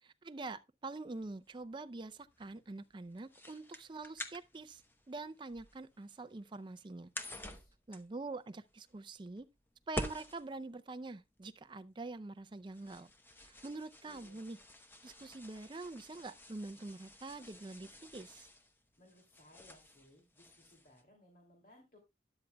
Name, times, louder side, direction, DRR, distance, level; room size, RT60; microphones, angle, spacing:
voice 1, 0.0-4.8 5.1-7.1 7.9-9.5 9.9-13.1 13.4-14.6 15.0-18.5, right 3 dB, 25° right, 0.5 m, -45 dB
sound 1, 1.2-21.0, left 1 dB, 10° left, 0.8 m, -50 dB
voice 2, 7.3-7.7 13.7-13.8 14.0-14.4 19.0-22.0, left 1 dB, 55° left, 2.6 m, -63 dB
13.0 x 10.5 x 2.2 m
head